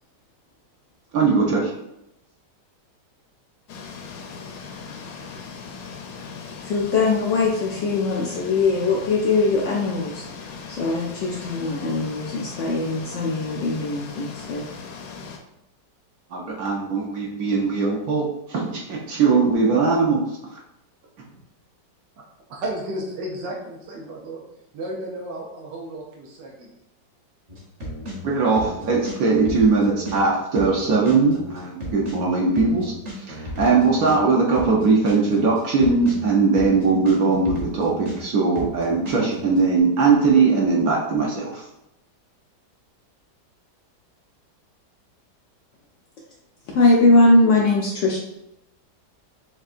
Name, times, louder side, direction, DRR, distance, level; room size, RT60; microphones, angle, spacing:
voice 1, 1.1-1.7 16.3-20.2 20.5-20.6 28.2-41.7, right 4 dB, 65° right, -3 dB, 1.1 m, -20 dB
sound 1, 3.7-15.4, left 5 dB, 70° left, 0.9 m, -38 dB
voice 2, 6.6-10.2 10.7-14.7 46.7-48.2, left 3 dB, 85° left, -2 dB, 0.6 m, -20 dB
voice 3, 22.5-24.4 24.7-26.7, right 1 dB, 85° right, -2 dB, 1.4 m, -33 dB
sound 2, 27.5-39.6, equal, 40° right, 0.5 m, -35 dB
6.2 x 2.2 x 2.5 m, 0.85 s
omnidirectional pair, 1.9 m